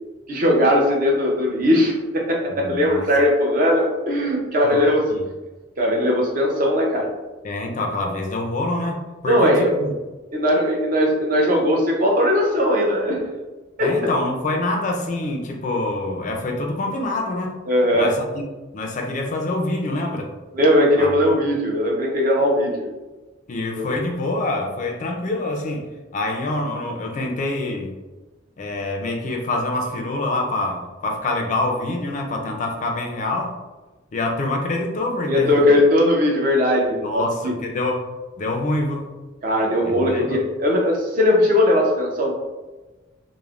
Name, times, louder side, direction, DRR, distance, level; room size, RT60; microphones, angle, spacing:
voice 1, 0.3-5.0 5.8-7.1 9.3-9.7 10.3-13.2 13.8-13.9 17.7-18.1 20.5-22.9 23.8-23.9 35.3-37.5 39.4-42.3, left 1 dB, 45° right, -1 dB, 0.5 m, -19 dB
voice 2, 2.5-3.0 4.6-4.8 5.1-5.2 7.4-9.9 13.8-17.6 17.9-18.4 18.7-20.3 21.0-21.1 23.5-27.9 28.6-33.5 34.1-35.8 37.0-38.0 38.4-39.1 39.8-40.4, left 2 dB, 40° left, 2 dB, 0.3 m, -26 dB
3.1 x 2.0 x 2.3 m, 1.2 s
head